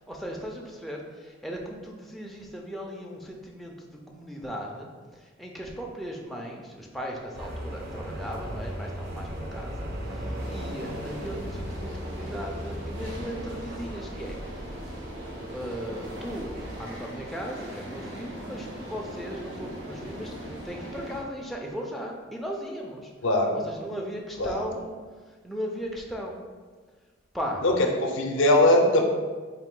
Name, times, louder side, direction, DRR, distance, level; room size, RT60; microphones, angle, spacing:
voice 1, 0.0-4.9 5.2-14.6 15.5-23.1 23.5-25.0 25.3-26.4 27.3-27.6, equal, ahead, -1 dB, 0.4 m, -37 dB
sound 1, 7.3-16.8, equal, 55° right, 0.6 m, -37 dB
sound 2, 10.3-21.2, right 1 dB, 70° right, 0.9 m, -40 dB
voice 2, 23.2-23.6 24.4-24.7 27.6-27.7 28.0-29.0, left 1 dB, 70° left, 2 dB, 0.5 m, -21 dB
4.0 x 2.5 x 3.6 m, 1.4 s
head